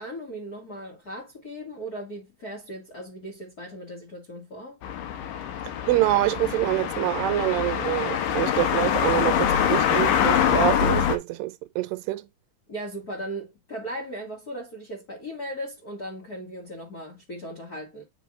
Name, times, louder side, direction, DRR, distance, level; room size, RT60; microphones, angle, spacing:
voice 1, 0.0-4.8 12.7-18.0, right 1 dB, 30° left, 1.9 m, -37 dB
sound 1, 4.8-11.2, left 9 dB, 70° left, 2.4 m, -24 dB
voice 2, 5.9-12.2, right 16 dB, 80° right, 2.3 m, -26 dB
8.4 x 3.4 x 3.6 m
omnidirectional pair, 4.2 m